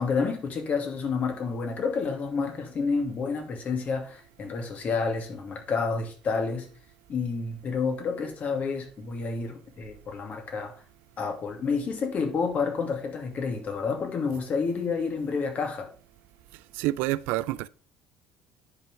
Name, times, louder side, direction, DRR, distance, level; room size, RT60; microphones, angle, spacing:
voice 1, 0.0-6.7 7.1-10.7 11.2-15.9, left 5 dB, 45° left, 2.7 m, -29 dB
voice 2, 16.7-17.7, right 17 dB, 70° right, 0.4 m, -28 dB
9.8 x 5.6 x 5.1 m
hypercardioid pair, 60°, 4 cm